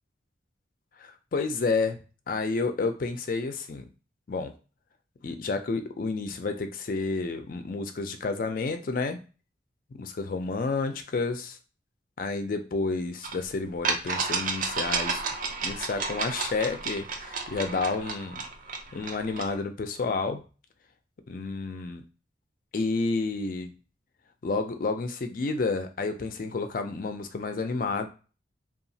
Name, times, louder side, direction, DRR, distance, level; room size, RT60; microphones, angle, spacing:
voice 1, 1.0-2.0 2.3-3.9 4.3-4.5 5.2-9.2 9.9-11.6 12.2-15.2 15.6-18.4 18.9-20.4 21.3-22.0 22.7-23.7 24.4-28.1, left 3 dB, 50° left, 7 dB, 0.4 m, -30 dB
sound 1, 13.2-13.3 13.8-19.6, right 4 dB, 45° right, 0.4 m, -31 dB
2.8 x 2.3 x 2.7 m, 0.34 s
head